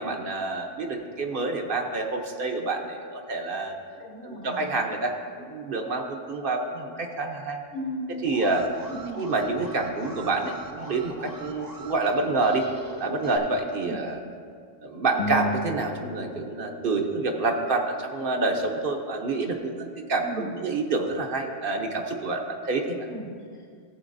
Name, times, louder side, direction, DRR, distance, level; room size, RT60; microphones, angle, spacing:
voice 1, 0.0-3.8 4.2-7.6 8.2-8.7 9.2-12.7 13.0-14.2 14.8-23.1, right 3 dB, 50° right, 3 dB, 0.9 m, -28 dB
voice 2, 4.0-4.8 7.7-8.2 8.9-9.2 13.8-14.1 20.2-20.6 23.1-23.7, equal, 75° left, -11 dB, 2.8 m, -37 dB
Alarm, 8.2-13.4, right 2 dB, 25° right, 0.5 m, -41 dB
sound 1, 15.2-17.8, left 2 dB, 55° left, 0.5 m, -34 dB
16.0 x 7.6 x 2.6 m, 2.2 s
omnidirectional pair, 1.2 m